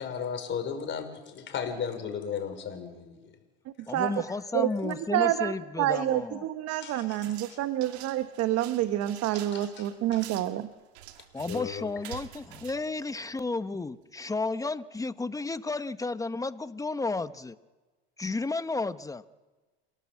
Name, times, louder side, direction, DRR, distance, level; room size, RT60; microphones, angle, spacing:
voice 1, 0.0-3.2 6.8-7.2 7.5-7.6 9.3-10.2 11.5-11.9, left 7 dB, 35° left, 7 dB, 5.3 m, -35 dB
voice 2, 3.9-6.4 11.3-17.6 18.2-19.2, left 3 dB, 10° left, 13 dB, 0.9 m, -32 dB
voice 3, 4.5-10.7, right 13 dB, 50° right, 9 dB, 1.3 m, -28 dB
sound 1, 7.1-13.7, right 12 dB, 80° right, 2.1 m, -47 dB
28.5 x 18.0 x 7.5 m, 1.2 s
supercardioid pair, 100°, 32 cm